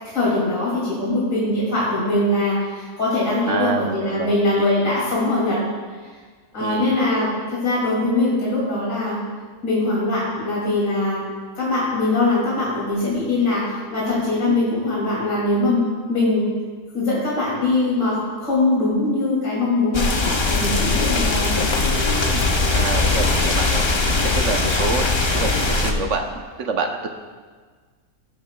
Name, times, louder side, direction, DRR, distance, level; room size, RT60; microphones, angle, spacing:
voice 1, 0.1-5.6 6.5-9.2 9.6-11.3 11.6-16.5 16.9-21.5, left 2 dB, 60° left, -7 dB, 2.8 m, -22 dB
voice 2, 3.4-4.9 6.6-6.9 14.5-14.7 22.3-23.8 24.2-25.1 25.3-27.1, right 4 dB, 60° right, 5 dB, 0.9 m, -27 dB
sound 1, 19.9-25.9, left 3 dB, 35° left, 0.4 m, -20 dB
18.0 x 8.5 x 2.2 m, 1.5 s
omnidirectional pair, 1.6 m